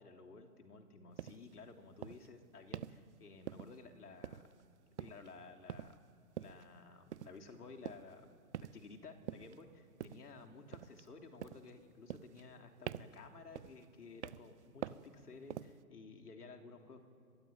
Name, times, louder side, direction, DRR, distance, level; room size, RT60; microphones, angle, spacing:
voice 1, 0.0-4.5 5.0-6.0 6.4-8.3 8.6-17.0, left 4 dB, 75° left, 4 dB, 3.6 m, -54 dB
sound 1, 1.2-1.4 2.0-2.3 2.7-3.0 3.5-3.9 4.2-4.7 5.0-5.3 5.7-6.0 6.4-6.6 7.1-7.4 7.8-8.1 8.5-8.9 9.3-9.6 10.0-10.3 10.7-11.1 11.4-11.7 12.1-12.6 12.9-13.2 13.5-13.9 14.2-14.5 14.8-15.1 15.5-15.8, right 10 dB, 50° right, 0.8 m, -45 dB
23.5 x 22.0 x 8.9 m, 2.6 s
hypercardioid pair, 140°, 46 cm